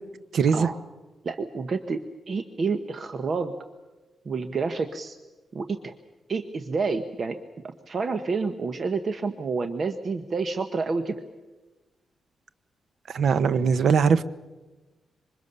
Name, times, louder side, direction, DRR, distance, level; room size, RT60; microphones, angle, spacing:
voice 1, 0.3-0.7 13.1-14.2, right 6 dB, 60° right, 12 dB, 1.0 m, -20 dB
voice 2, 1.2-2.0 2.3-3.5 4.2-5.2 5.5-5.9 6.3-7.4 7.9-11.2 13.4-13.7, right 4 dB, 35° right, 8 dB, 1.0 m, -29 dB
26.5 x 25.0 x 6.9 m, 1.2 s
wide cardioid pair, 175°, 0 cm